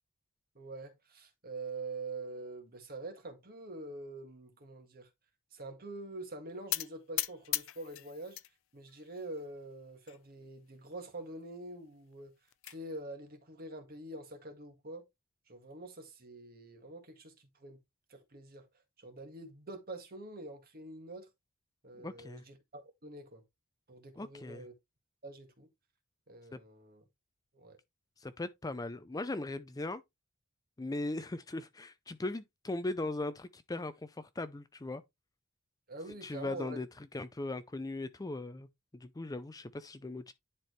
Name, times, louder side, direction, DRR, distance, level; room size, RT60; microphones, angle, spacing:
voice 1, 0.6-5.1 5.5-8.4 8.7-12.3 12.7-15.0 15.5-17.8 18.1-18.7 19.0-21.3 21.8-23.4 23.9-24.7 25.2-25.7 26.3-27.0 27.5-27.8 35.9-36.8, right 2 dB, 40° right, 1.8 m, -45 dB
sound 1, 6.7-8.5 8.9-9.5 10.1-10.2 10.5-10.6 10.9-11.0 12.1-12.8, left 17 dB, 60° left, 0.5 m, -37 dB
voice 2, 22.0-22.4 24.2-24.7 26.5-26.6 28.2-30.0 30.8-35.0 36.2-38.7 38.9-40.3, left 2 dB, 15° left, 0.4 m, -39 dB
10.5 x 4.6 x 3.2 m
head